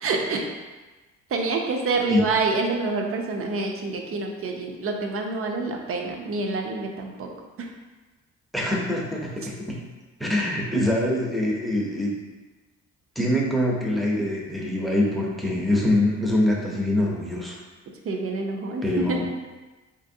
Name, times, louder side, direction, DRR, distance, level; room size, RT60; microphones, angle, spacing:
voice 1, 0.0-0.5 1.3-7.3 7.6-7.7 18.0-19.3, right 3 dB, 50° right, 2 dB, 0.5 m, -27 dB
voice 2, 8.5-9.8 10.2-12.2 13.2-17.6 18.8-19.2, left 1 dB, ahead, -3 dB, 0.5 m, -24 dB
3.0 x 2.6 x 2.6 m, 1.2 s
cardioid pair, 90°, 30 cm